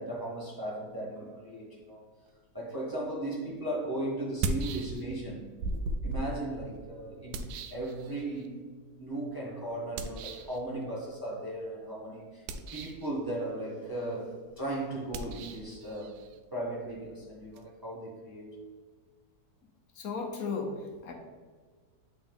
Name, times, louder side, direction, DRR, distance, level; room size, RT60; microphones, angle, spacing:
voice 1, 0.0-2.0 2.5-5.5 6.0-8.6 9.0-12.5 12.7-16.2 16.5-18.6, right 1 dB, 15° right, -4 dB, 1.0 m, -37 dB
sound 1, 3.2-3.3 4.2-5.3 5.6-8.5 10.0-10.6 12.3-13.1 15.1-17.6, right 2 dB, 80° right, 1.1 m, -37 dB
voice 2, 20.0-21.1, left 4 dB, 65° left, 3 dB, 1.1 m, -35 dB
8.2 x 3.9 x 3.5 m, 1.5 s
omnidirectional pair, 1.7 m